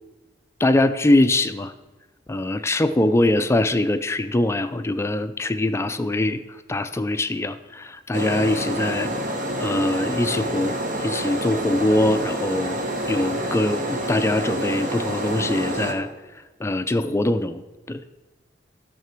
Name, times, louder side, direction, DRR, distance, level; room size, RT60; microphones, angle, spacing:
voice 1, 0.6-1.7 2.3-9.1 9.6-16.1 16.3-17.6 17.9-18.0, left 1 dB, 15° left, 10 dB, 0.4 m, -23 dB
sound 1, 8.1-15.9, right 1 dB, 50° right, 1.3 m, -28 dB
12.5 x 6.7 x 4.6 m, 1.2 s
head